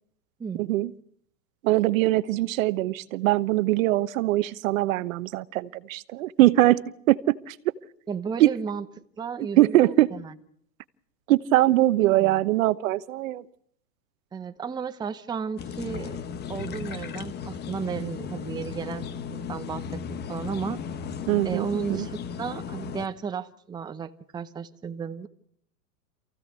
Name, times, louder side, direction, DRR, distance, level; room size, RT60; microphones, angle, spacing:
voice 1, 0.6-0.9 1.6-6.8 7.1-7.6 8.4-8.5 9.6-10.1 11.3-13.4 21.3-22.1, right 16 dB, 55° right, 16 dB, 1.1 m, -22 dB
voice 2, 8.1-8.8 9.2-10.3 12.0-12.4 14.3-16.1 16.5-20.8 21.4-25.3, right 6 dB, 10° right, 9 dB, 0.9 m, -34 dB
sound 1, 15.6-23.1, left 7 dB, 20° left, 1.3 m, -35 dB
27.5 x 16.0 x 8.3 m, 0.69 s
hypercardioid pair, 130°, 48 cm